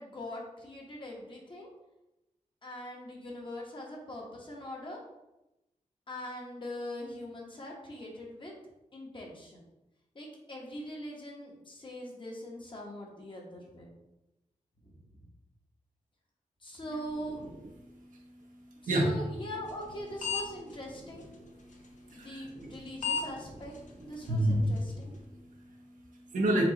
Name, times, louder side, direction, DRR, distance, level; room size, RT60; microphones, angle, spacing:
voice 1, 0.0-1.7 2.6-5.0 6.1-8.5 8.9-9.6 10.1-13.9 14.8-15.0 16.6-17.4 18.8-21.3 22.1-23.7 24.0-25.1, left 1 dB, 35° left, -2 dB, 1.2 m, -42 dB
voice 2, 17.6-19.1 21.4-22.8 23.1-23.2 24.2-26.6, right 1 dB, 75° right, 0 dB, 0.9 m, -32 dB
sound 1, 19.7-19.9 20.2-20.4 20.7-20.8 21.7-21.9 22.7-22.8 23.0-23.3 23.7-23.8 24.3-24.4 24.8-24.9, left 6 dB, 65° left, 0.8 m, -31 dB
4.4 x 2.4 x 4.1 m, 0.94 s
wide cardioid pair, 80°, 14 cm